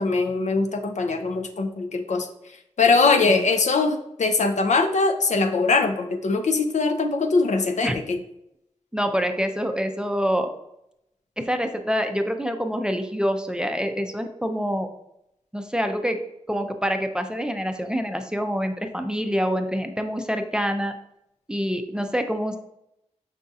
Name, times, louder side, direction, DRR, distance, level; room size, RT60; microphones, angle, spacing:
voice 1, 0.0-2.3 2.8-8.2, left 3 dB, 75° left, 6 dB, 0.5 m, -22 dB
voice 2, 8.9-10.5 11.4-14.9 15.5-16.2 16.5-20.9 21.5-22.6, equal, 5° right, 6 dB, 0.4 m, -26 dB
5.6 x 3.6 x 2.6 m, 0.81 s
wide cardioid pair, 85°, 12 cm